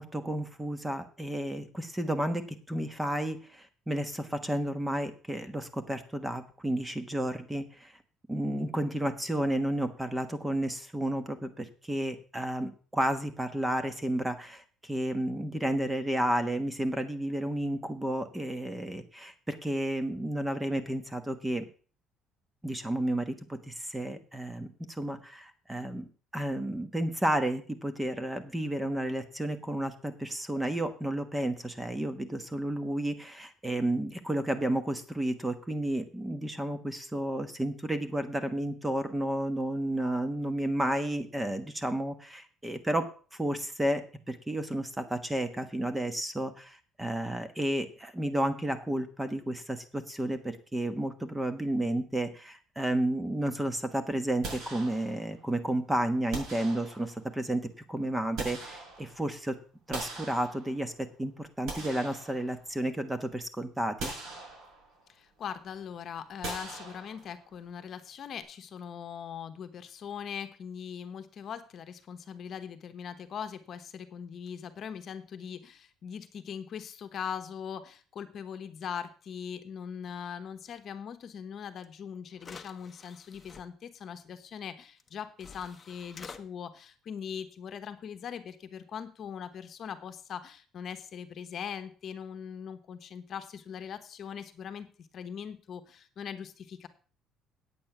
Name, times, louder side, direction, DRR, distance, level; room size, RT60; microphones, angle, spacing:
voice 1, 0.0-2.4 2.7-8.0 8.3-21.7 22.6-24.7 25.0-43.0 43.3-57.6 57.9-59.5 59.9-60.9 61.2-64.1, right 1 dB, 10° right, 9 dB, 1.2 m, -32 dB
sound 1, 54.4-55.5 56.3-57.4 58.0-59.4 59.9-61.0 61.4-62.9 63.3-63.4 64.0-65.1 66.4-67.5, right 3 dB, 65° right, 6.0 m, -42 dB
voice 2, 65.1-96.9, left 7 dB, 45° left, 9 dB, 1.0 m, -41 dB
sound 2, 81.8-81.9 82.4-83.6 85.0-85.1 85.4-86.4, left 5 dB, 25° left, 0.9 m, -48 dB
8.8 x 8.7 x 5.9 m, 0.40 s
cardioid pair, 135°, 0 cm